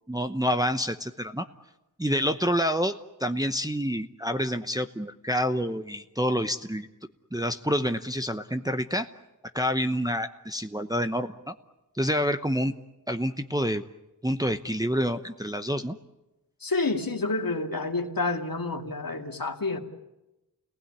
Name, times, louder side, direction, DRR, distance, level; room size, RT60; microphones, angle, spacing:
voice 1, 0.1-1.5 2.0-2.9 3.2-6.9 7.3-9.1 9.5-11.5 11.9-12.7 13.1-13.8 14.2-16.0, equal, 10° right, 6 dB, 0.9 m, -27 dB
voice 2, 16.6-19.8, left 3 dB, 60° left, 4 dB, 2.5 m, -29 dB
29.5 x 19.5 x 9.8 m, 1.0 s
wide cardioid pair, 75°, 39 cm